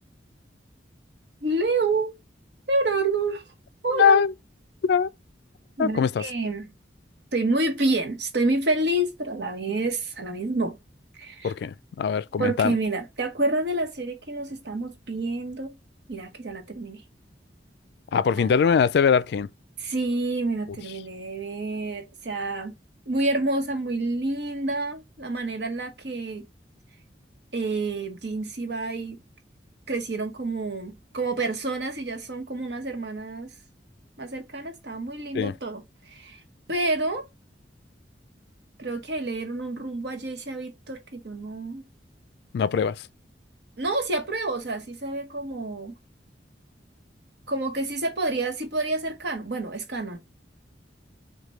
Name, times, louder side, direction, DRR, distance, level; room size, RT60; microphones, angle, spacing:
voice 1, 1.4-2.1 2.7-3.4 3.8-4.2 5.8-6.7 7.3-10.8 11.1-11.5 12.4-15.7 16.1-17.0 18.3-18.5 19.8-22.7 23.1-26.4 27.5-29.2 29.9-33.5 34.2-36.4 36.7-37.2 38.8-41.8 43.8-45.9 47.5-50.2, right 2 dB, 70° right, 1.0 m, -28 dB
voice 2, 3.9-4.3 4.8-5.1 5.8-6.2 11.4-12.8 18.1-19.5 35.3-35.5 42.5-43.1, left 6 dB, 65° left, 0.3 m, -22 dB
6.4 x 2.2 x 3.0 m
head